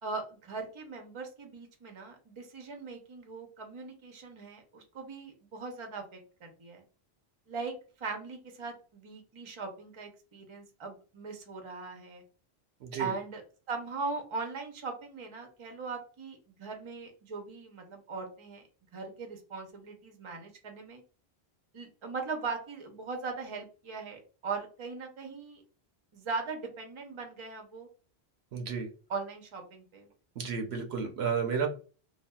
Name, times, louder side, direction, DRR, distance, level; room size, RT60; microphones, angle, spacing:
voice 1, 0.0-6.8 7.5-12.2 13.0-13.4 13.7-18.6 18.9-21.0 21.7-25.6 26.1-27.9 29.1-30.1, right 4 dB, 35° right, 3 dB, 0.6 m, -40 dB
voice 2, 12.8-13.1 28.5-28.9 30.4-31.7, right 6 dB, 75° right, 3 dB, 0.9 m, -32 dB
3.4 x 2.3 x 2.3 m, 0.37 s
omnidirectional pair, 1.1 m